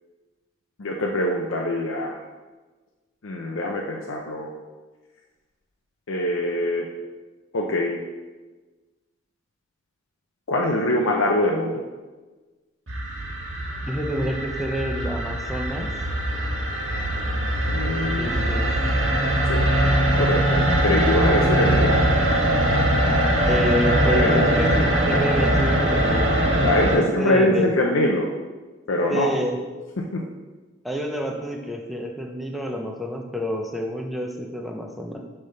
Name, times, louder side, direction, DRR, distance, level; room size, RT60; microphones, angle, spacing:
voice 1, 0.8-2.2 3.2-4.5 6.1-6.9 7.5-8.0 10.5-11.8 17.7-18.3 19.4-19.7 20.2-22.0 24.1-25.2 26.6-28.3 28.9-29.3 30.0-30.2, left 1 dB, 80° left, 0 dB, 0.6 m, -23 dB
sound 1, 12.9-26.9, right 1 dB, 75° right, 1.4 m, -21 dB
voice 2, 13.8-15.9 18.2-18.7 23.4-26.4 26.9-27.7 29.1-29.6 30.8-35.2, equal, ahead, 1 dB, 0.6 m, -28 dB
6.7 x 3.5 x 5.5 m, 1.3 s
head